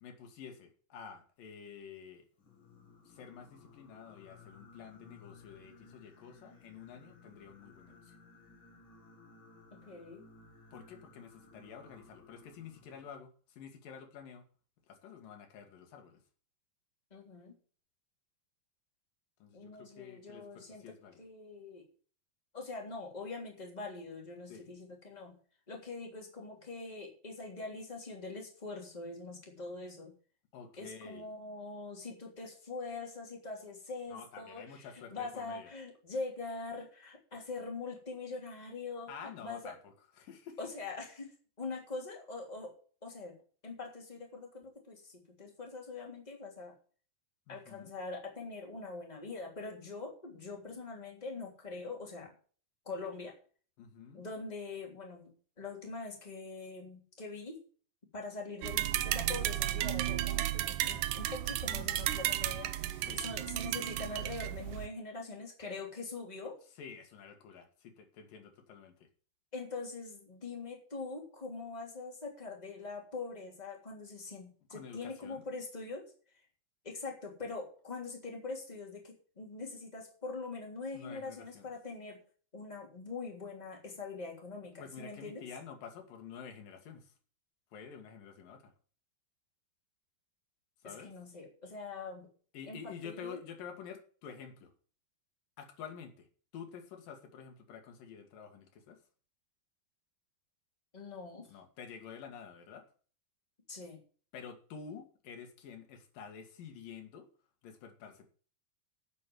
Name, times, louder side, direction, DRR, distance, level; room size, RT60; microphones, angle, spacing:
voice 1, 0.0-2.3 3.1-8.2 10.7-14.5 14.9-16.2 19.4-21.2 24.5-24.7 30.5-31.3 34.1-35.7 39.1-40.6 47.5-47.9 53.8-54.3 63.0-63.3 66.8-69.1 74.7-75.4 80.9-81.7 84.8-87.1 87.7-88.7 90.8-91.1 92.5-94.7 95.6-96.3 96.5-99.0 101.5-102.9 104.3-107.3 107.6-108.3, left 7 dB, 90° left, 3.6 m, -49 dB
Singing, 2.4-13.1, left 4 dB, 40° left, 2.5 m, -58 dB
voice 2, 9.7-10.2 17.1-17.5 19.5-20.8 21.2-21.8 22.5-25.3 25.7-30.1 30.8-34.9 35.1-39.7 40.6-42.7 43.0-43.4 43.6-46.7 47.5-52.3 52.8-53.3 54.1-55.3 55.6-57.6 58.1-66.6 69.5-76.1 76.8-82.2 82.5-85.4 91.0-92.3 92.7-92.8 93.0-93.4 100.9-101.5 103.7-104.0, left 3 dB, 10° left, 3.1 m, -43 dB
sound 1, 58.6-64.9, right 14 dB, 75° right, 2.2 m, -33 dB
9.6 x 7.7 x 7.8 m
omnidirectional pair, 3.8 m